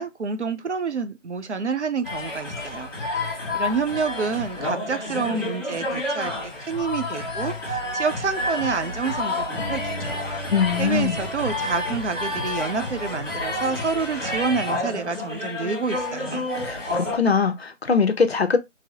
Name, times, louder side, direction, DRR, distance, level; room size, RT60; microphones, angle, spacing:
voice 1, 0.0-10.3 10.8-16.5, right 5 dB, 65° right, 0.6 m, -28 dB
sound 1, 2.0-17.2, left 2 dB, 15° left, 0.8 m, -29 dB
Acoustic guitar, 9.6-14.0, equal, 10° right, 1.1 m, -39 dB
voice 2, 10.5-11.2 16.6-18.6, left 5 dB, 55° left, 0.6 m, -22 dB
3.9 x 2.0 x 2.8 m
figure-of-eight pair, 165°, 38 cm